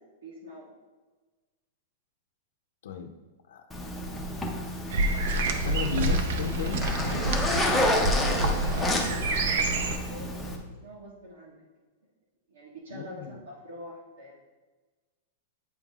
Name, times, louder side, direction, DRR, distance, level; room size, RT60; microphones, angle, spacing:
voice 1, 0.2-0.7 7.9-9.3 9.6-11.7 12.5-14.4, right 1 dB, 70° right, -5 dB, 1.9 m, -44 dB
Zipper (clothing), 3.7-10.6, left 1 dB, ahead, 0.5 m, -30 dB
sound 1, 4.9-10.0, right 2 dB, 55° right, 0.6 m, -27 dB
voice 2, 5.6-7.6 12.9-13.4, left 8 dB, 70° left, 4 dB, 0.5 m, -35 dB
8.2 x 5.4 x 2.4 m, 1.3 s
supercardioid pair, 180°, 0 cm